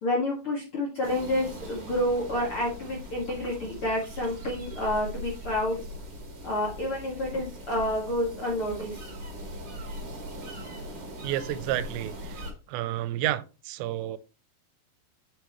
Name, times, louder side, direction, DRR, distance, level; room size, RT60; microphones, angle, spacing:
voice 1, 0.0-5.8 6.4-9.0, left 1 dB, 50° left, -3 dB, 1.7 m, -29 dB
sound 1, 1.0-12.5, equal, 45° right, 1.5 m, -40 dB
voice 2, 11.2-12.4 12.7-14.2, right 13 dB, 90° right, 15 dB, 2.9 m, -30 dB
7.7 x 6.7 x 3.0 m, 0.32 s
omnidirectional pair, 5.1 m